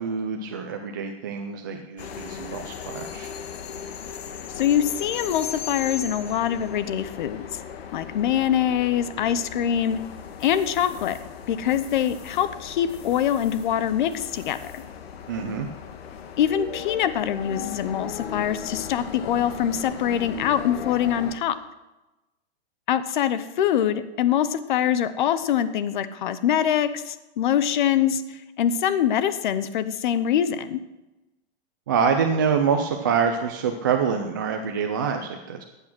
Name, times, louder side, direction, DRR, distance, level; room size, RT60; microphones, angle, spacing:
voice 1, 0.0-3.3 15.3-15.7 31.9-35.6, right 6 dB, 20° right, 4 dB, 0.3 m, -26 dB
sound 1, 2.0-21.4, left 7 dB, 65° left, 1.6 m, -37 dB
voice 2, 4.5-7.5 7.9-10.0 10.4-11.2 11.5-14.8 16.4-21.5 22.9-30.8, left 10 dB, 45° left, 13 dB, 0.9 m, -24 dB
14.5 x 8.5 x 6.1 m, 1.0 s
supercardioid pair, 170°, 33 cm